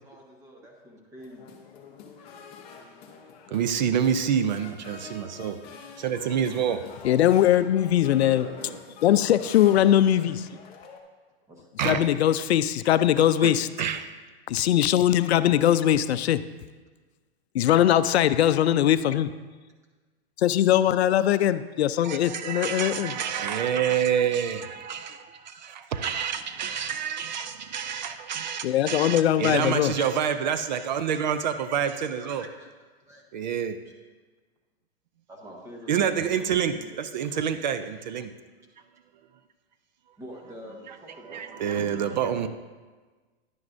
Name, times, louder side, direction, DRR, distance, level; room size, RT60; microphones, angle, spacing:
voice 1, 0.0-1.5 8.1-8.9 11.5-11.7 15.0-15.2 26.3-26.4 32.1-32.7 33.0-33.4 33.8-33.9 35.3-37.0 37.3-37.4 40.2-42.0, equal, 10° right, 0 dB, 1.0 m, -46 dB
sound 1, 1.2-11.0, left 5 dB, 20° left, 0.6 m, -47 dB
voice 2, 3.5-5.6 6.0-6.9 11.8-12.0 13.4-13.5 13.8-14.1 22.0-32.5 33.3-33.8 35.9-38.3 41.3-42.5, right 8 dB, 45° right, 11 dB, 0.4 m, -27 dB
voice 3, 7.0-8.5 9.0-10.5 11.8-13.7 14.5-16.5 17.5-19.3 20.4-23.1 28.6-29.9, left 11 dB, 85° left, 14 dB, 0.5 m, -21 dB
10.5 x 9.4 x 2.6 m, 1.3 s
hypercardioid pair, 155°, 31 cm